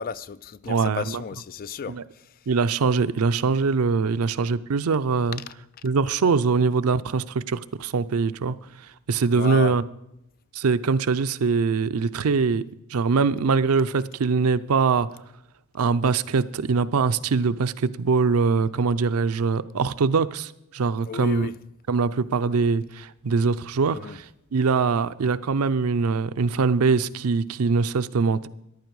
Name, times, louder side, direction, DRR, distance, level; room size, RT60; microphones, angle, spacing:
voice 1, 0.0-2.0 5.5-5.6 9.3-9.8 21.0-21.5 23.9-24.2, left 5 dB, 40° left, 0.4 m, -33 dB
voice 2, 0.7-1.2 1.9-2.0 2.5-5.4 5.8-8.5 9.1-9.8 10.5-12.6 12.9-15.1 15.7-21.5 21.9-24.3 24.5-28.5, right 4 dB, 80° right, 0.5 m, -23 dB
14.5 x 11.0 x 4.7 m
head